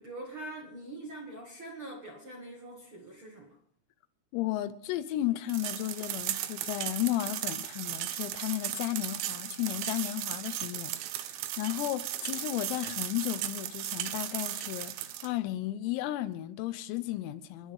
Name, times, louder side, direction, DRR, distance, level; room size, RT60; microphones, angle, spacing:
voice 1, 0.0-3.6, right 2 dB, 55° right, 1.4 m, -43 dB
voice 2, 4.3-17.7, left 15 dB, 85° left, 3.6 m, -34 dB
sound 1, 5.5-15.3, right 13 dB, 80° right, 3.0 m, -36 dB
28.0 x 11.5 x 3.7 m
omnidirectional pair, 6.0 m